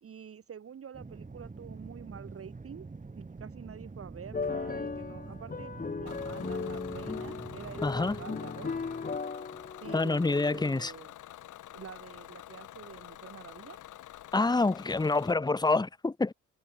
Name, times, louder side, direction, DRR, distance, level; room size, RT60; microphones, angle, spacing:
voice 1, 0.0-2.9 3.2-8.7 9.8-11.1 11.7-13.8, right 8 dB, 50° right, 2.6 m, -47 dB
sound 1, 0.9-8.3, right 3 dB, 25° right, 7.3 m, -45 dB
sound 2, 4.3-10.7, left 4 dB, 30° left, 3.2 m, -37 dB
Bus / Engine, 6.1-15.3, left 13 dB, 80° left, 5.5 m, -48 dB
voice 2, 7.8-8.2 9.9-10.9 14.3-16.3, left 3 dB, 15° left, 1.3 m, -27 dB
cardioid pair, 90°, 30 cm